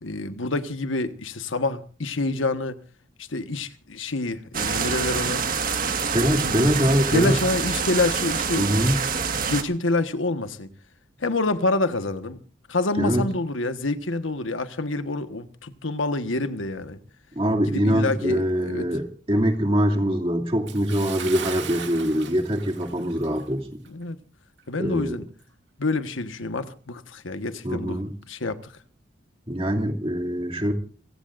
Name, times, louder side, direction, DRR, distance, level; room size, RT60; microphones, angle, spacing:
voice 1, 0.0-2.8 3.2-5.4 6.3-8.8 9.3-10.7 11.2-12.4 12.7-17.0 17.7-18.9 23.9-24.2 24.7-25.2 25.8-28.0 28.3-28.7, left 2 dB, 90° left, 1.5 m, -27 dB
sound 1, 4.5-9.6, right 5 dB, 45° right, 1.7 m, -26 dB
voice 2, 6.1-7.4 8.6-9.0 13.0-13.2 17.3-23.8 24.8-25.2 27.6-28.1 29.5-30.7, equal, 30° right, 2.6 m, -23 dB
Bathtub (filling or washing) / Splash splatter, 20.7-23.5 23.8-24.0 24.6-24.7, right 7 dB, 65° right, 2.4 m, -38 dB
29.5 x 16.5 x 2.6 m
head